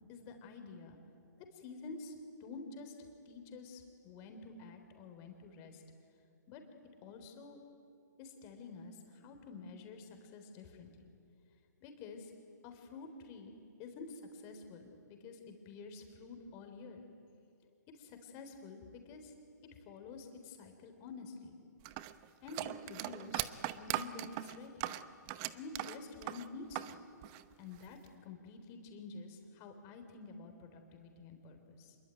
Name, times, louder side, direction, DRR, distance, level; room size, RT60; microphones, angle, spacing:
voice 1, 0.1-1.0 1.5-2.9 3.3-5.8 6.5-6.6 7.0-7.6 8.2-11.1 11.8-12.3 12.6-13.5 13.8-17.0 17.9-19.3 19.9-21.6 22.4-23.5 23.8-24.9 25.5-27.0 27.6-32.0, left 4 dB, 30° left, 5 dB, 3.8 m, -49 dB
sound 1, 21.8-27.0 27.2-28.1, right 15 dB, 30° right, 0.9 m, -39 dB
26.5 x 22.5 x 9.3 m, 2.5 s
hypercardioid pair, 145°, 10 cm